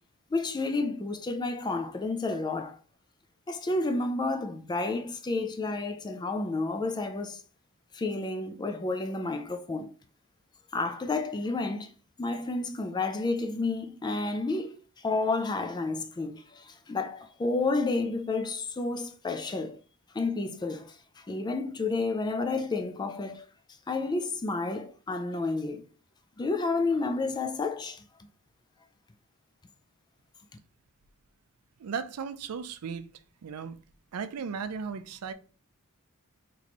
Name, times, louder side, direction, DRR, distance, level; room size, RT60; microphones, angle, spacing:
voice 1, 0.3-2.8 3.5-7.4 7.9-9.9 10.7-11.9 12.2-14.8 15.0-19.8 20.1-20.9 21.3-23.4 23.9-25.9 26.4-28.0, left 3 dB, 20° left, 0.3 m, -30 dB
voice 2, 31.8-33.1 33.4-33.8 34.1-35.3, right 6 dB, 85° right, 0.4 m, -36 dB
4.1 x 3.1 x 2.9 m
head